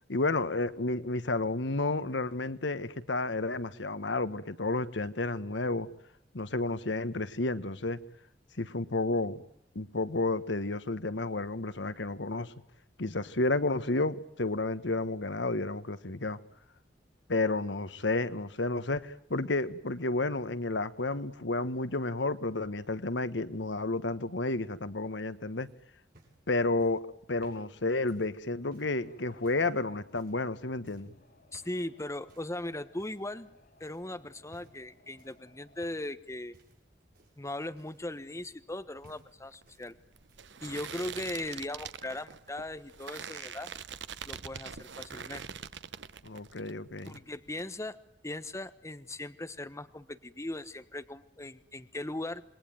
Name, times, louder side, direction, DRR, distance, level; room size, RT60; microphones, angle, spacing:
voice 1, 0.1-5.9 6.3-8.0 8.6-9.4 9.7-12.5 13.0-16.4 17.3-25.7 26.5-27.0 27.3-31.1 46.2-47.2, left 2 dB, 75° left, 13 dB, 1.4 m, -31 dB
sound 1, 25.6-29.0 29.4-29.7 30.1-30.5 30.8-31.1 31.5-31.8 32.3-32.6 33.0-33.5 33.8-34.0 34.5-34.9 35.2-36.2 36.5-38.8 39.0-39.9 40.1-40.6 41.6-41.7, right 1 dB, 55° right, 7.3 m, -61 dB
sound 2, 28.7-35.9, left 1 dB, 55° left, 6.1 m, -62 dB
voice 2, 31.5-33.5 33.8-36.5 37.4-39.9 40.6-43.7 44.3-45.5 47.1-52.4, left 1 dB, 15° left, 10 dB, 1.3 m, -39 dB
sound 3, 39.0-46.7 47.0-47.7, right 7 dB, 70° right, 1.0 m, -44 dB
28.0 x 21.5 x 9.3 m, 0.74 s
head